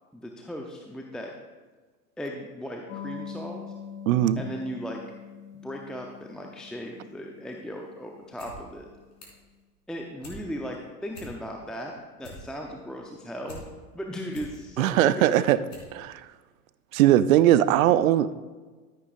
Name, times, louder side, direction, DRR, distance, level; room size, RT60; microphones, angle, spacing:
voice 1, 0.1-1.3 2.2-3.6 4.4-5.0 5.6-8.9 9.9-13.6 13.9-15.5, equal, ahead, 1 dB, 0.7 m, -37 dB
sound 1, 2.9-9.1, left 6 dB, 50° left, 1.8 m, -43 dB
voice 2, 4.1-4.4 14.8-15.6 15.9-16.2 16.9-18.4, right 12 dB, 60° right, 15 dB, 0.6 m, -20 dB
sound 2, 8.2-8.6 8.9-9.5 9.9-10.4 10.8-10.9 11.1-11.7 12.0-13.6 14.0-14.6 15.1-15.2 15.7-15.9 16.2-16.3, left 1 dB, 85° left, 3.3 m, -45 dB
13.5 x 8.8 x 2.5 m, 1.4 s
hypercardioid pair, 95°, 47 cm